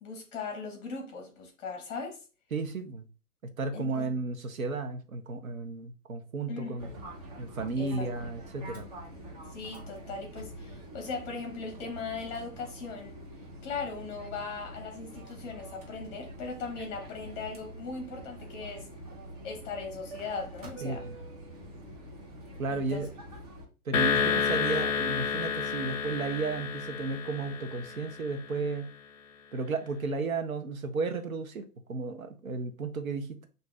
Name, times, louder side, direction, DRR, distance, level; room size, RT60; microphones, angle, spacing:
voice 1, 0.0-2.2 3.7-4.1 6.5-6.8 7.8-8.1 9.5-13.2 13.6-18.9 19.4-21.0 22.7-23.1 24.2-24.3, left 4 dB, 20° left, 1.0 m, -39 dB
voice 2, 2.5-3.0 3.6-6.9 7.4-8.9 20.8-21.2 22.6-23.1 23.8-28.9 29.5-33.5, right 3 dB, 60° right, 0.8 m, -33 dB
Fixed-wing aircraft airplane, 6.8-23.7, right 1 dB, 25° right, 0.7 m, -45 dB
sound 1, 23.9-28.4, left 6 dB, 55° left, 0.6 m, -30 dB
5.6 x 2.7 x 2.3 m
figure-of-eight pair, 120°, 46 cm